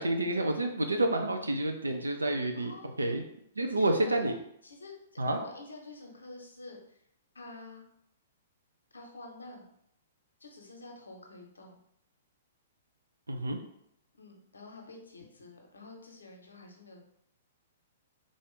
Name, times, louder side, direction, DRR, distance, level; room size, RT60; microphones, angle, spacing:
voice 1, 0.0-2.7 3.0-3.2 3.6-4.4 5.2-5.4 13.3-13.6, right 1 dB, 80° right, 5 dB, 0.4 m, -29 dB
voice 2, 2.5-3.3 3.7-4.3 4.6-7.0 7.3-7.8 8.9-9.7 10.4-11.8 14.2-17.0, left 2 dB, 75° left, 1 dB, 0.8 m, -48 dB
3.6 x 2.5 x 3.7 m, 0.74 s
figure-of-eight pair, 110°, 0 cm